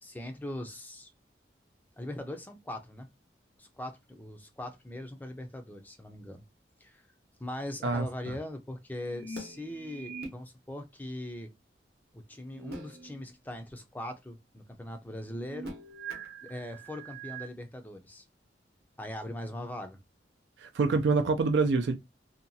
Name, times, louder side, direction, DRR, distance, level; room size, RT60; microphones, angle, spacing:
voice 1, 0.0-1.1 2.0-3.1 3.6-6.4 6.8-7.0 7.4-11.5 12.1-15.7 16.4-18.3 19.0-20.0 21.6-21.7, left 1 dB, 10° left, 0.4 m, -40 dB
voice 2, 7.8-8.3 20.6-21.9, right 4 dB, 80° right, 0.4 m, -26 dB
sound 1, 9.0-10.3 12.4-13.3 13.7-13.8 15.2-17.5, right 3 dB, 60° right, 0.8 m, -43 dB
2.7 x 2.2 x 2.6 m
head